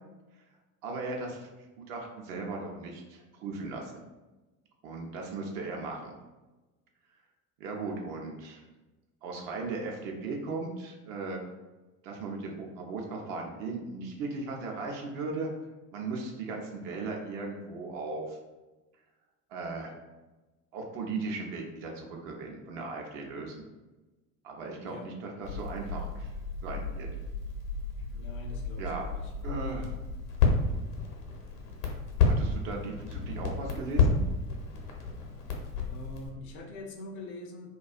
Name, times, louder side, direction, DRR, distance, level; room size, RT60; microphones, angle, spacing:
voice 1, 0.8-1.5 1.9-4.0 4.8-6.1 7.6-8.6 9.2-11.4 12.0-15.5 15.9-18.4 19.5-19.9 20.7-23.6 24.4-26.3 26.6-27.1 28.8-29.0 29.4-30.0 32.2-34.2, right 3 dB, 55° right, 0 dB, 0.5 m, -37 dB
Crackle, 25.4-36.3, left 4 dB, 75° left, 0.7 m, -31 dB
voice 2, 28.1-29.3 35.9-37.7, left 2 dB, 30° left, 3 dB, 0.3 m, -44 dB
2.3 x 2.2 x 2.4 m, 1.1 s
figure-of-eight pair, 60°, 47 cm